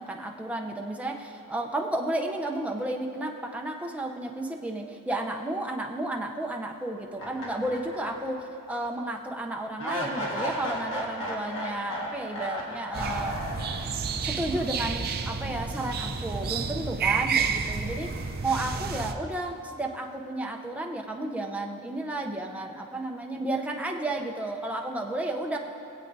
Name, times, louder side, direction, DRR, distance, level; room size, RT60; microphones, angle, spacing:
voice 1, 0.0-13.4 14.2-18.1 18.4-25.6, right 1 dB, 5° right, 0 dB, 0.7 m, -32 dB
sound 1, 7.2-8.5 8.8-8.9 9.8-14.1, equal, 60° left, 1.7 m, -34 dB
sound 2, 12.9-19.1, right 5 dB, 45° right, 0.6 m, -30 dB
21.0 x 8.1 x 2.7 m, 2.7 s
head